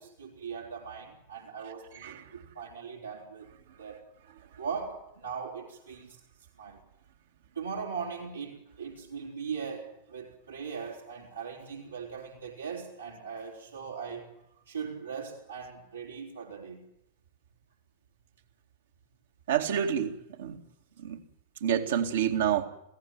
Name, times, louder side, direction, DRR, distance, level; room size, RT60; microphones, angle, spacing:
voice 1, 0.0-3.5 3.8-4.0 4.6-6.2 6.6-6.8 7.5-14.3 14.7-16.8, right 6 dB, 80° right, 4.1 m, -39 dB
voice 2, 19.5-20.6 21.0-21.2 21.6-22.7, right 9 dB, 60° right, 2.3 m, -28 dB
28.0 x 17.0 x 7.8 m
figure-of-eight pair, 90°, 0 cm